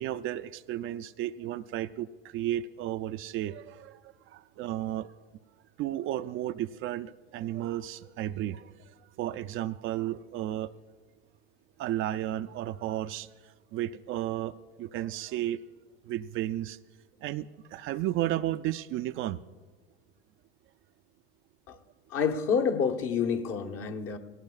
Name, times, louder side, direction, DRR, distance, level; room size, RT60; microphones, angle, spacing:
voice 1, 0.0-5.1 5.8-10.7 11.8-15.6 16.0-16.8 17.2-19.4 21.7-21.8, right 13 dB, 45° right, 0.4 m, -33 dB
voice 2, 22.1-24.2, left 6 dB, 50° left, 1.2 m, -28 dB
18.0 x 18.0 x 2.4 m
hypercardioid pair, 95°, 30 cm